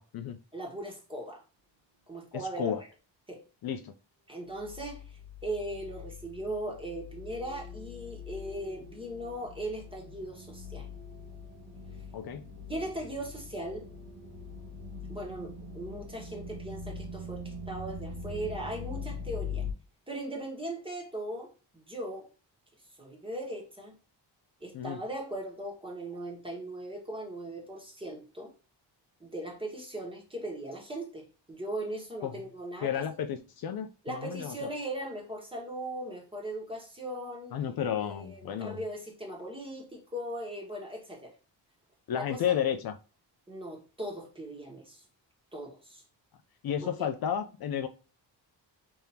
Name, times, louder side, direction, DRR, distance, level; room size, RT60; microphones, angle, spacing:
voice 1, 0.0-0.4 2.3-2.8 3.6-3.9 12.1-12.5 24.7-25.0 32.2-32.4 32.8-34.7 37.5-38.8 42.1-43.0 46.6-47.9, left 9 dB, 60° left, 0.5 m, -32 dB
voice 2, 0.5-1.4 2.1-2.7 3.3-3.4 4.3-10.9 12.6-13.9 15.1-19.6 20.1-22.3 23.0-23.9 24.6-28.5 29.2-33.0 34.0-37.5 38.0-41.3 42.1-42.4 43.5-45.0 45.5-46.0 46.8-47.1, right 1 dB, 10° right, 1.4 m, -39 dB
sound 1, 4.5-19.7, left 3 dB, 90° right, 1.4 m, -42 dB
3.5 x 3.4 x 2.7 m
wide cardioid pair, 125°, 43 cm